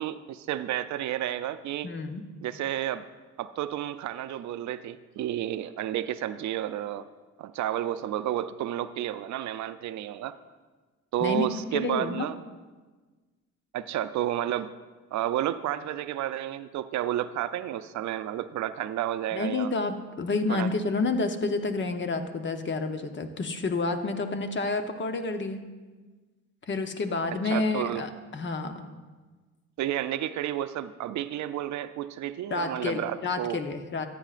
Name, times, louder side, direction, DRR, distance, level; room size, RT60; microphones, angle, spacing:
voice 1, 0.0-1.9 2.4-3.1 3.4-7.1 7.4-10.3 11.1-12.4 13.7-14.7 15.1-19.7 20.5-20.7 27.5-28.0 29.8-33.6, right 12 dB, 70° right, 13 dB, 0.5 m, -31 dB
voice 2, 1.8-2.3 11.2-11.5 11.7-12.3 19.3-25.6 26.7-28.9 32.5-34.1, left 3 dB, 40° left, 7 dB, 0.8 m, -29 dB
14.0 x 9.1 x 2.5 m, 1.3 s
cardioid pair, 90°, 30 cm